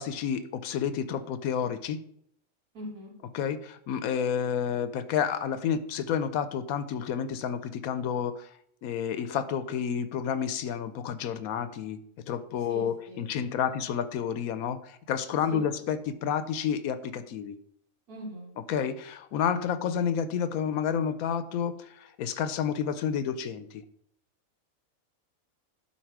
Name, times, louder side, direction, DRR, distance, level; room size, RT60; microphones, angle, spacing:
voice 1, 0.0-2.0 3.3-8.5 8.8-12.0 12.3-17.6 18.7-23.8, left 8 dB, 80° left, 12 dB, 1.1 m, -30 dB
voice 2, 2.7-3.1 12.6-13.8 15.5-15.8 18.1-18.5, equal, 90° right, -4 dB, 3.7 m, -42 dB
11.5 x 4.3 x 4.7 m, 0.70 s
omnidirectional pair, 1.5 m